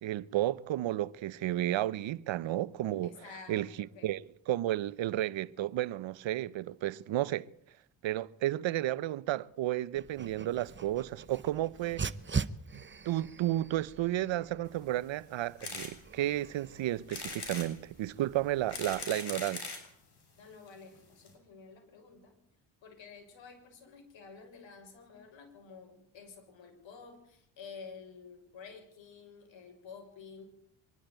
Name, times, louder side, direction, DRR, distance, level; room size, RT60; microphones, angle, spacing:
voice 1, 0.0-3.1 3.5-3.7 4.0-7.5 8.0-12.0 12.7-19.7, right 14 dB, 75° right, 0.9 m, -32 dB
voice 2, 3.0-4.2 20.4-22.3 22.8-30.4, left 5 dB, 75° left, 6.4 m, -51 dB
Dog, 9.9-19.0, right 5 dB, 25° right, 0.9 m, -42 dB
sound 1, 15.6-15.9 16.4-16.5 17.1-17.7 18.4-19.9 20.7-20.8 21.0-21.1 21.3-21.4, left 4 dB, 55° left, 6.7 m, -40 dB
24.0 x 11.5 x 9.5 m
cardioid pair, 65°, 46 cm